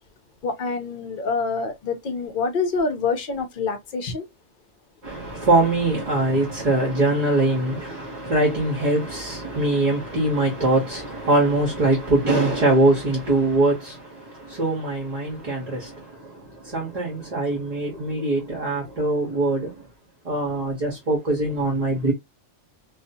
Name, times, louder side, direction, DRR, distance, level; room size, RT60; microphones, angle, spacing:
voice 1, 0.4-4.3, left 4 dB, 55° left, 0.7 m, -26 dB
voice 2, 5.0-19.8 20.2-22.1, right 2 dB, 35° right, 1.0 m, -22 dB
2.6 x 2.3 x 2.6 m
omnidirectional pair, 1.2 m